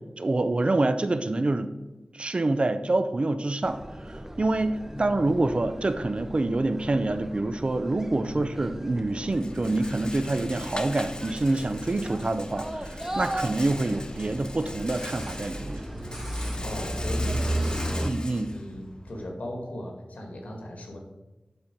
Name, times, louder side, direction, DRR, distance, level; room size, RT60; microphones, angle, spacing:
voice 1, 0.2-1.7 2.1-15.8 18.0-18.5, right 2 dB, 50° right, 11 dB, 0.6 m, -26 dB
sound 1, 3.6-18.1, right 1 dB, 15° right, 0.7 m, -35 dB
voice 2, 4.9-5.2 8.2-8.5 16.6-18.1 18.5-21.0, left 1 dB, 90° left, 1 dB, 1.8 m, -38 dB
Rattle, 8.2-19.3, left 2 dB, 35° left, 0.8 m, -41 dB
11.5 x 4.4 x 4.5 m, 1.1 s
wide cardioid pair, 60°, 2 cm